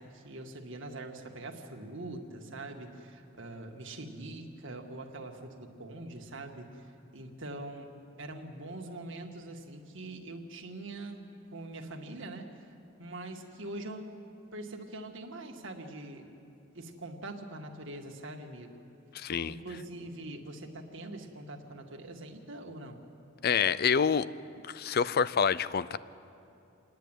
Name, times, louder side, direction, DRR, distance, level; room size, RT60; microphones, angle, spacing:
voice 1, 0.0-6.7 7.1-7.9 8.2-12.5 13.0-14.1 14.5-16.3 16.7-18.7 19.4-23.0, right 2 dB, 65° right, 3 dB, 1.9 m, -43 dB
voice 2, 19.1-19.6 23.4-24.3 24.6-26.0, left 6 dB, 50° left, 17 dB, 0.5 m, -27 dB
28.0 x 10.5 x 9.1 m, 2.6 s
head